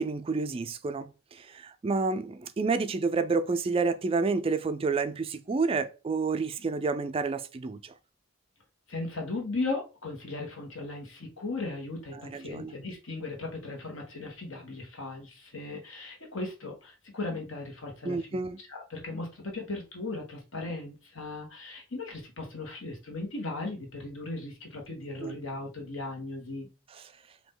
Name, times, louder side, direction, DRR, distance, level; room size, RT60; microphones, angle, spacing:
voice 1, 0.0-7.9 12.1-12.7 18.0-18.6 25.2-25.3 26.9-27.0, right 4 dB, 30° right, 0.3 m, -29 dB
voice 2, 8.9-18.3 18.7-26.7, left 2 dB, 75° left, 1.7 m, -37 dB
4.9 x 2.8 x 3.8 m
head